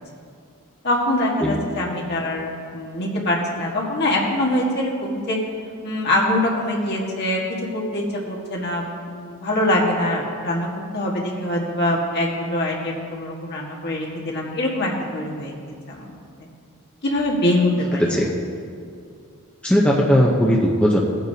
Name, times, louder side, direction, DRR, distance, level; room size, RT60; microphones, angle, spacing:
voice 1, 0.8-2.5 2.7-5.4 5.8-15.5 15.9-16.2 17.0-18.0, left 1 dB, 50° left, -2 dB, 1.7 m, -23 dB
voice 2, 19.6-21.0, equal, 5° left, -3 dB, 0.8 m, -18 dB
17.5 x 9.1 x 2.8 m, 2.4 s
head